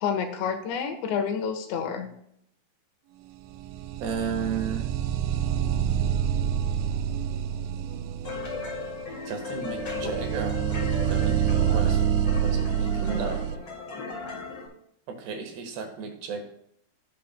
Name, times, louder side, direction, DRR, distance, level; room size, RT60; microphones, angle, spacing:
voice 1, 0.0-2.1 10.0-10.1, left 7 dB, 80° left, 5 dB, 3.5 m, -29 dB
sound 1, 3.5-13.6, right 9 dB, 90° right, 2.8 m, -27 dB
voice 2, 4.0-4.9 9.3-10.6 11.1-11.4 11.7-12.0 12.4-13.5 15.1-16.4, right 6 dB, 70° right, 4 dB, 3.5 m, -33 dB
sound 2, 8.2-14.7, left 4 dB, 30° left, 3.3 m, -36 dB
17.0 x 7.7 x 2.2 m, 0.71 s
omnidirectional pair, 5.1 m